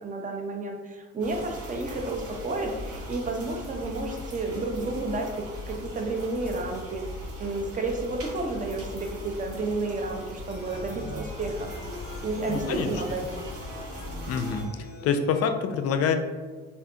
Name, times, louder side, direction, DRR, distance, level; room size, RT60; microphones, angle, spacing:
voice 1, 0.0-7.0 7.4-11.7 12.2-13.4, right 2 dB, 25° right, 2 dB, 0.6 m, -31 dB
sound 1, 1.2-14.6, equal, 50° right, 0.9 m, -39 dB
sound 2, 10.5-15.5, left 1 dB, 35° left, 0.8 m, -44 dB
voice 2, 12.5-12.9 14.3-14.7 15.0-16.1, left 6 dB, 50° left, 7 dB, 0.4 m, -26 dB
3.5 x 2.5 x 2.3 m, 1.3 s
supercardioid pair, 70°, 31 cm